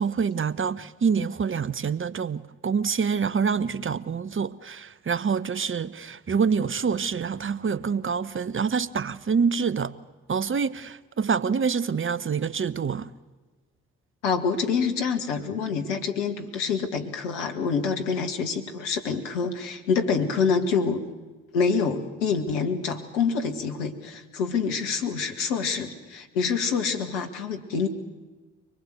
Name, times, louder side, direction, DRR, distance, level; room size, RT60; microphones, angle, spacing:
voice 1, 0.0-9.9 10.3-13.1, right 6 dB, 35° right, 1.1 m, -26 dB
voice 2, 14.2-21.0 21.5-27.9, left 5 dB, 80° left, 2.0 m, -26 dB
25.0 x 20.5 x 7.9 m
hypercardioid pair, 45°, 36 cm